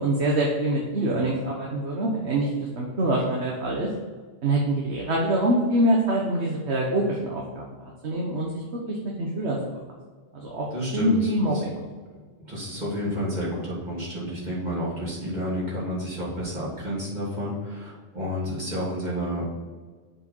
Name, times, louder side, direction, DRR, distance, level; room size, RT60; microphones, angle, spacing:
voice 1, 0.0-3.9 4.4-7.6 8.0-8.5 8.9-9.6 10.3-10.7 10.9-11.9, right 1 dB, 85° right, -2 dB, 1.5 m, -25 dB
voice 2, 10.7-11.3 12.4-19.5, equal, 40° right, -6 dB, 3.0 m, -30 dB
7.1 x 5.1 x 5.5 m, 1.4 s
omnidirectional pair, 1.1 m